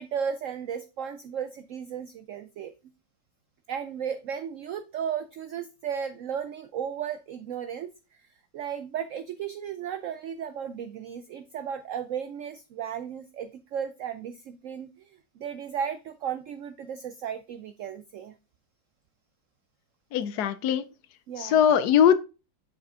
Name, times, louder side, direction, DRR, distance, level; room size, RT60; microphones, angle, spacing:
voice 1, 0.0-2.7 3.7-7.9 8.5-15.1 15.4-18.3 21.3-21.6, right 8 dB, 85° right, 0.6 m, -35 dB
voice 2, 20.1-20.8 21.4-22.2, left 9 dB, 70° left, 1.1 m, -21 dB
7.0 x 5.8 x 3.6 m
omnidirectional pair, 1.9 m